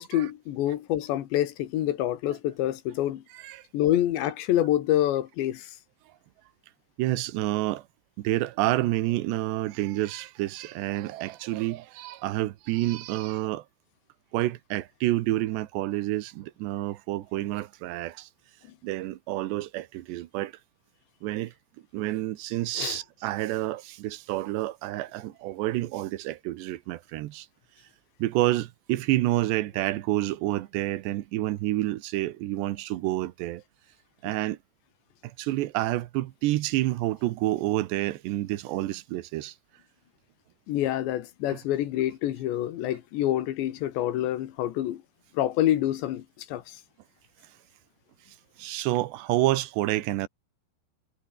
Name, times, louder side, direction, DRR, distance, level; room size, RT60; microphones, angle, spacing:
voice 1, 0.0-3.2 3.7-5.7 22.8-23.0 40.7-45.0 45.3-46.8, left 13 dB, 90° left, 4.0 m, -27 dB
voice 2, 7.0-7.9 8.2-13.6 14.3-18.3 18.8-20.5 21.2-21.5 21.9-27.5 28.2-33.6 34.2-34.6 35.2-39.5 41.5-41.6 48.6-50.3, right 16 dB, 85° right, 3.2 m, -29 dB
omnidirectional pair, 4.9 m